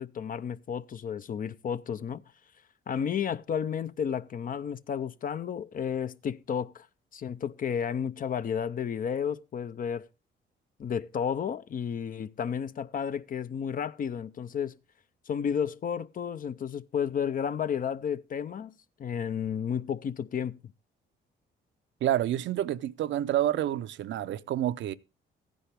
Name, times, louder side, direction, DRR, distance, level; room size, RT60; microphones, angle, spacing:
voice 1, 0.0-2.2 2.9-6.9 7.1-10.1 10.8-14.7 15.3-18.7 19.0-20.6, left 7 dB, 45° left, 0.5 m, -32 dB
voice 2, 22.0-24.9, right 12 dB, 70° right, 0.6 m, -28 dB
14.0 x 10.0 x 3.4 m
cardioid pair, 90°, 20 cm